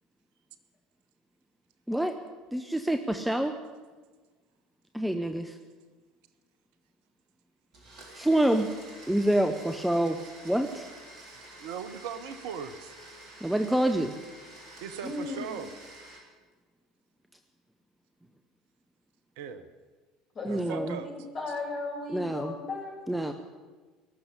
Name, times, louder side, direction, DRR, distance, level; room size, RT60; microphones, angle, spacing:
voice 1, 2.5-3.5 4.9-5.6 8.2-8.7 9.1-10.2 10.4-10.9 13.4-14.1 20.4-21.0 22.1-22.6 23.1-23.3, right 1 dB, 5° right, 6 dB, 0.9 m, -26 dB
Domestic sounds home sounds, 7.7-16.2, right 1 dB, 45° right, 3.9 m, -49 dB
voice 2, 11.6-12.9 14.8-15.7 19.4-19.7 20.5-21.1, right 7 dB, 60° right, 12 dB, 0.8 m, -38 dB
voice 3, 15.0-15.6 20.3-23.3, left 3 dB, 35° left, -2 dB, 5.6 m, -37 dB
18.5 x 7.0 x 9.9 m, 1.3 s
figure-of-eight pair, 65°, 0 cm